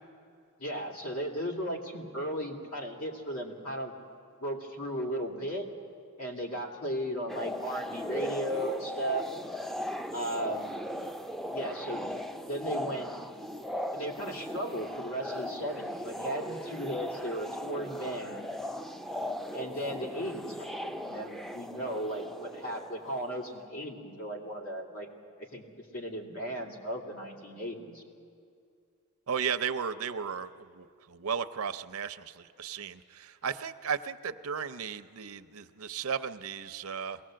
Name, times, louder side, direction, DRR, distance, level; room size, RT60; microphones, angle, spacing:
voice 1, 0.6-3.9 4.4-5.7 6.2-9.2 10.1-10.8 11.5-12.1 12.4-13.1 13.9-18.5 19.5-25.1 25.4-28.0, equal, 80° left, 0 dB, 2.7 m, -36 dB
sound 1, 7.3-23.5, left 1 dB, ahead, 0.4 m, -38 dB
voice 2, 29.3-37.2, right 7 dB, 75° right, 12 dB, 0.6 m, -35 dB
22.5 x 18.0 x 7.6 m, 2.3 s
head